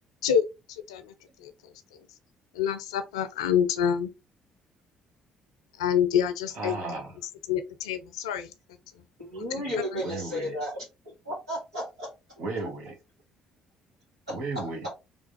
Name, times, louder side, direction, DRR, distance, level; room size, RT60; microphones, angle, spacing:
voice 1, 2.6-4.1 5.8-6.7 7.5-8.5 9.9-10.0, left 8 dB, 80° left, 0.5 m, -26 dB
voice 2, 6.5-7.2 10.0-10.6 12.4-13.0 14.3-14.9, right 3 dB, 60° right, 1.5 m, -34 dB
voice 3, 9.2-10.8 11.2-12.1 14.3-14.9, left 1 dB, 90° right, 2.7 m, -33 dB
3.7 x 3.4 x 3.8 m
hypercardioid pair, 50°, 3 cm